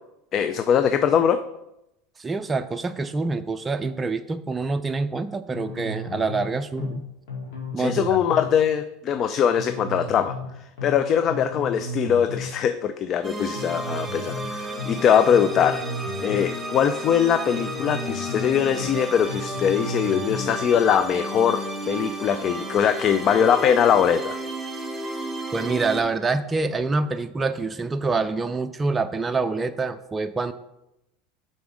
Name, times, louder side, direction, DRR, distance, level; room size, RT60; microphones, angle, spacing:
voice 1, 0.3-1.4 7.8-10.4 10.8-15.8 16.2-24.4, left 8 dB, 45° left, 10 dB, 0.4 m, -21 dB
voice 2, 2.2-7.0 7.7-8.1 25.5-30.5, right 3 dB, 20° right, 8 dB, 0.4 m, -26 dB
sound 1, 5.5-6.5 6.8-7.0 7.3-8.5 9.5-10.5 10.8-11.0 11.3-12.5 13.5-14.5 14.8-15.0 15.3-16.5 17.5-18.5 18.8-19.0 19.3-20.5, left 1 dB, 70° left, 2.1 m, -34 dB
sound 2, 13.2-26.0, right 1 dB, 5° right, 1.8 m, -33 dB
6.9 x 4.1 x 5.0 m, 0.87 s
hypercardioid pair, 85°, 0 cm